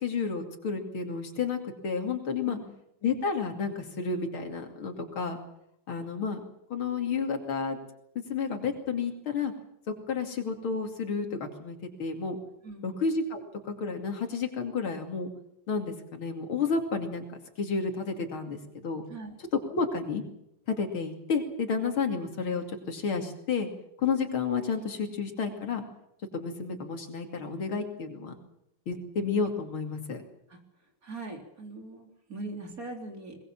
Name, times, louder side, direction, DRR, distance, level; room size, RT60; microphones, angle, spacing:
voice 1, 0.0-2.6 3.0-5.4 5.9-6.4 6.7-7.8 8.3-9.5 9.9-12.4 12.8-15.3 15.7-19.0 19.7-20.2 20.7-23.7 24.0-25.8 26.3-28.3 28.9-30.2, left 5 dB, 75° left, 4 dB, 3.4 m, -31 dB
voice 2, 12.6-13.0 19.1-19.4 30.5-30.6 31.0-33.4, right 2 dB, 40° right, 3 dB, 4.0 m, -41 dB
21.0 x 21.0 x 7.4 m, 0.78 s
omnidirectional pair, 2.3 m